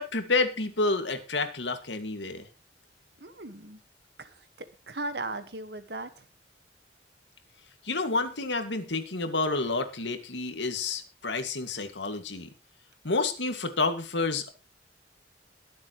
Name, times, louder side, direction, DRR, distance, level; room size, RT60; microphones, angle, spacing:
voice 1, 0.0-2.5 7.8-12.5 13.0-14.5, left 3 dB, 85° left, 7 dB, 2.2 m, -29 dB
voice 2, 3.2-3.8 4.2-6.2, right 2 dB, 65° right, 10 dB, 1.6 m, -38 dB
22.0 x 7.6 x 3.2 m, 0.32 s
head